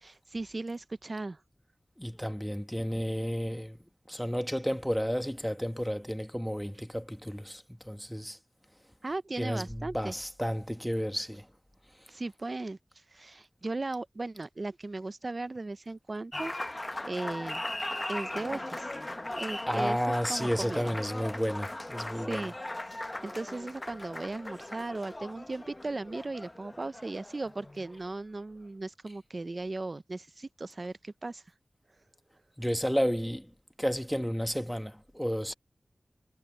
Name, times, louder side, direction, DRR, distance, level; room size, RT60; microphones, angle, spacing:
voice 1, 0.0-1.4 9.0-10.1 12.1-12.8 13.1-16.5 16.8-17.6 18.1-18.9 19.3-20.0 20.3-20.9 22.3-22.5 22.9-31.4, right 2 dB, 50° right, 0.5 m, -37 dB
voice 2, 2.0-3.8 4.1-8.4 9.4-11.5 12.0-12.1 19.7-22.5 32.6-33.5 33.8-35.5, equal, ahead, 1.4 m, -32 dB
Applause, 16.3-28.1, left 1 dB, 25° left, 0.7 m, -39 dB
wide cardioid pair, 85°, 0 cm